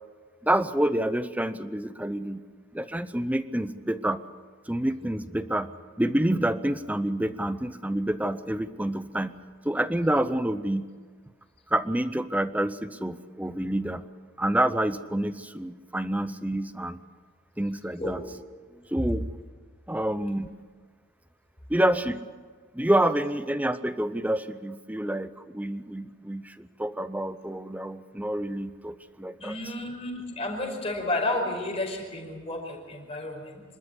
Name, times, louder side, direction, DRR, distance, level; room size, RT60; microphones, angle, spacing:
voice 1, 0.4-2.4 2.7-4.2 4.7-5.7 6.0-9.4 9.6-10.9 11.7-14.0 14.4-17.0 17.6-18.2 18.9-19.2 19.9-20.5 21.7-22.2 22.7-29.5, right 1 dB, 5° right, 13 dB, 0.7 m, -28 dB
voice 2, 29.4-33.6, left 2 dB, 30° left, 1 dB, 5.1 m, -31 dB
26.5 x 13.0 x 9.9 m, 1.5 s
head